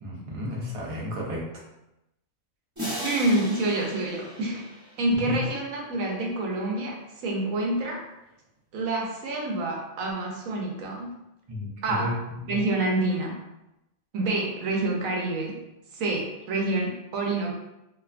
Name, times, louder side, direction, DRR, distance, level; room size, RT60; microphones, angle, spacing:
voice 1, 0.0-1.4 5.3-5.4 11.5-12.6, left 1 dB, 55° right, -3 dB, 0.3 m, -32 dB
sound 1, 2.8-5.6, equal, 15° right, 0.6 m, -37 dB
voice 2, 3.0-4.7 5.0-8.0 8.7-11.1 11.8-12.1 12.5-13.4 14.1-15.6 15.9-17.5, right 2 dB, 85° right, -1 dB, 1.1 m, -27 dB
2.8 x 2.2 x 2.4 m, 0.92 s
omnidirectional pair, 1.4 m